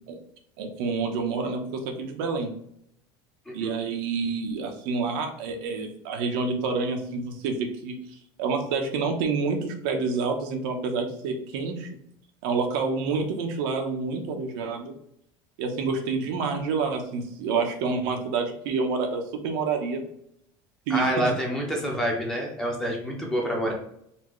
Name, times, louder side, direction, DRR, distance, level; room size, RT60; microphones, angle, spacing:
voice 1, 0.6-2.5 3.5-7.9 8.4-11.9 12.4-14.9 15.6-20.0 20.9-21.3, right 4 dB, 75° right, 3 dB, 0.9 m, -28 dB
voice 2, 3.5-3.8 20.9-23.7, equal, 5° left, -2 dB, 0.9 m, -27 dB
4.3 x 2.8 x 3.1 m, 0.74 s
cardioid pair, 165°, 11 cm